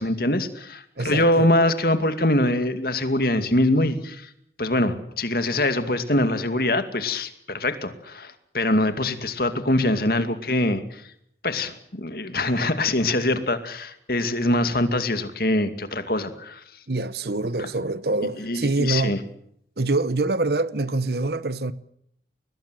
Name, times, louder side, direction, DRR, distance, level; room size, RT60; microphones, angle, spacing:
voice 1, 0.0-4.3 4.6-11.0 11.4-16.6 17.6-17.7 18.4-19.2, left 1 dB, 55° left, 2.4 m, -23 dB
voice 2, 1.0-1.5 16.9-19.2 19.8-21.7, right 2 dB, 60° right, 1.0 m, -25 dB
22.0 x 21.0 x 7.7 m
head